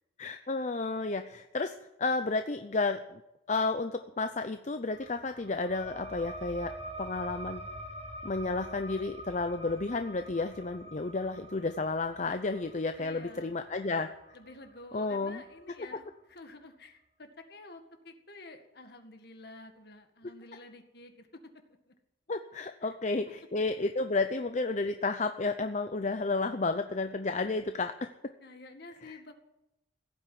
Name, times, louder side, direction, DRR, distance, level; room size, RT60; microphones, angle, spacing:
voice 1, 0.2-3.2 3.5-6.7 7.0-7.7 8.2-14.1 14.9-15.4 22.3-28.1 29.0-29.2, left 3 dB, 40° left, 8 dB, 0.7 m, -32 dB
sound 1, 4.9-16.1, right 1 dB, 30° right, 2.5 m, -46 dB
voice 2, 13.0-13.6 14.3-21.4 21.9-22.0 22.8-23.0 23.8-23.9 28.4-29.3, left 2 dB, 55° left, 6 dB, 2.0 m, -50 dB
16.5 x 9.0 x 9.5 m, 0.89 s
head